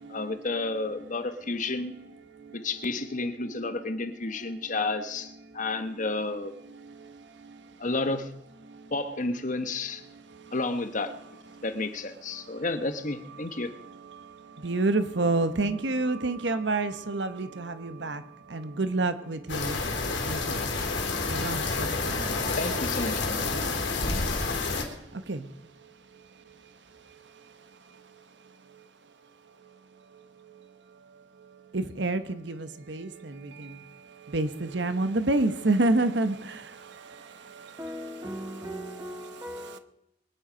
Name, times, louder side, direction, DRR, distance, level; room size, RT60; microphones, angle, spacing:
voice 1, 0.1-2.0 2.5-6.6 7.8-8.3 8.9-10.0 10.5-11.2 11.6-13.7 22.6-23.5, left 3 dB, 45° left, 1.1 m, -31 dB
voice 2, 14.6-18.2 18.5-19.7 20.3-20.4 21.3-21.6 25.3-25.4 31.7-32.2 32.9-33.1 34.3-34.5 34.7-36.3, right 2 dB, 65° right, 1.1 m, -26 dB
sound 1, 19.5-24.8, left 3 dB, 70° left, 3.5 m, -29 dB
voice 3, 37.8-39.8, equal, 15° right, 1.8 m, -38 dB
22.5 x 10.5 x 5.1 m
head